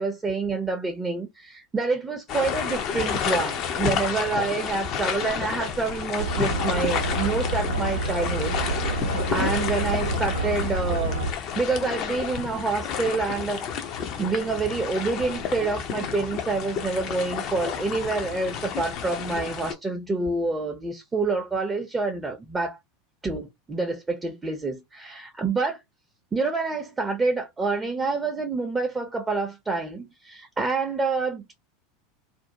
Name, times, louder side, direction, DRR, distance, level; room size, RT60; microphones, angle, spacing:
voice 1, 0.0-9.0 9.3-11.3 11.6-22.8 23.2-25.8 26.3-31.5, right 3 dB, 15° right, 0.5 m, -27 dB
sound 1, 2.3-19.7, left 7 dB, 45° left, 0.5 m, -30 dB
sound 2, 6.2-11.3, right 2 dB, 80° right, 0.4 m, -28 dB
2.5 x 2.0 x 2.8 m
figure-of-eight pair, 80°, 0 cm